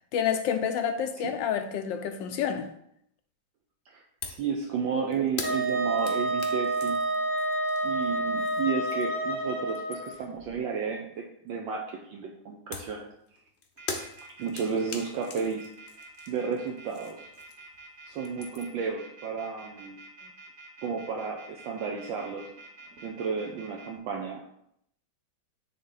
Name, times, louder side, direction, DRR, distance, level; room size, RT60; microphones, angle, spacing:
voice 1, 0.1-2.7, left 8 dB, 75° left, 7 dB, 1.2 m, -29 dB
voice 2, 3.9-7.0 7.8-13.1 14.4-15.7 16.3-17.2 18.1-20.0 20.8-22.5 23.0-24.4, right 6 dB, 75° right, 1 dB, 1.4 m, -32 dB
sound 1, 4.2-4.5 4.8-9.3 9.6-10.4 12.7-17.8 18.1-18.9, left 4 dB, 50° left, 0.8 m, -42 dB
Wind instrument woodwind instrument, 5.4-10.1, right 1 dB, 10° right, 0.9 m, -29 dB
sound 2, 13.8-23.9, right 3 dB, 40° right, 1.1 m, -48 dB
9.4 x 3.6 x 3.9 m, 0.73 s
omnidirectional pair, 2.2 m